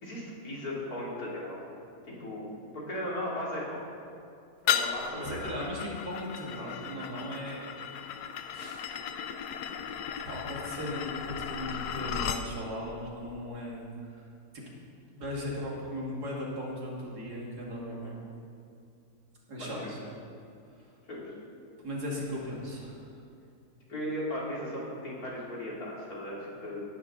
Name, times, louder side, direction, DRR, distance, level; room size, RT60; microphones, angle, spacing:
voice 1, 0.0-1.6 2.1-2.5 2.7-3.8 4.6-5.4 6.6-6.8 17.8-18.1 19.6-19.9 21.1-21.3 23.9-26.8, left 1 dB, 70° left, -5 dB, 3.7 m, -37 dB
sound 1, 4.7-12.5, left 8 dB, 90° left, 1.3 m, -35 dB
voice 2, 5.2-7.7 8.5-8.8 10.3-14.2 14.5-14.6 15.1-18.0 19.5-20.2 21.8-23.0, equal, 85° right, -3 dB, 3.0 m, -37 dB
18.5 x 11.0 x 4.0 m, 2.6 s
omnidirectional pair, 1.7 m